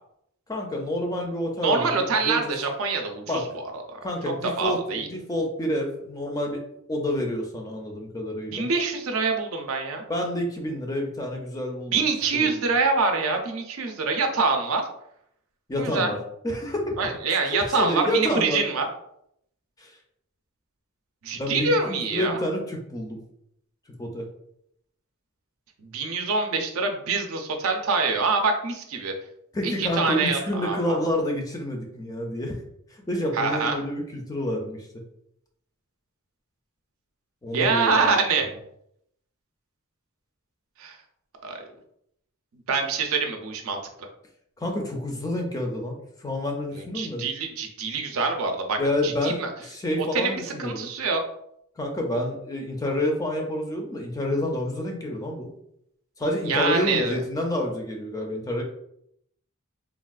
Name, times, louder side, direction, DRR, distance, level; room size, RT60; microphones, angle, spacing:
voice 1, 0.5-2.5 3.3-3.4 4.0-8.7 10.1-12.0 12.4-12.7 15.7-16.2 16.4-17.0 17.5-18.6 19.8-19.9 21.3-23.2 24.0-24.3 29.5-32.6 32.9-34.9 37.4-38.1 44.6-47.3 48.8-50.9 51.8-55.5 56.2-58.6, left 1 dB, 15° left, 1 dB, 0.4 m, -28 dB
voice 2, 1.6-4.0 4.6-5.1 8.5-10.0 11.9-14.8 15.8-16.1 17.0-18.9 21.2-22.4 25.9-29.1 29.6-31.0 33.3-33.8 37.5-38.5 40.8-41.0 41.4-41.6 42.7-44.1 46.7-49.5 50.0-51.2 56.5-57.2, right 4 dB, 70° right, 4 dB, 0.5 m, -25 dB
3.4 x 2.3 x 2.3 m, 0.74 s
head